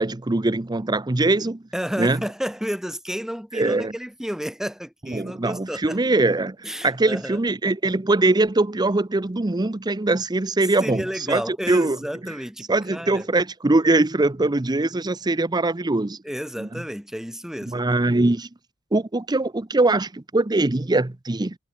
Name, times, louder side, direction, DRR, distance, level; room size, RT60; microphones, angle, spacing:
voice 1, 0.0-1.6 2.0-2.2 3.5-3.9 5.1-6.6 6.8-11.4 11.7-12.0 12.7-16.2 16.6-16.7 17.7-18.5 18.9-21.6, right 2 dB, 20° right, 0.7 m, -22 dB
voice 2, 1.7-6.0 6.6-7.4 10.8-13.3 16.2-17.9, equal, ahead, 2.4 m, -31 dB
head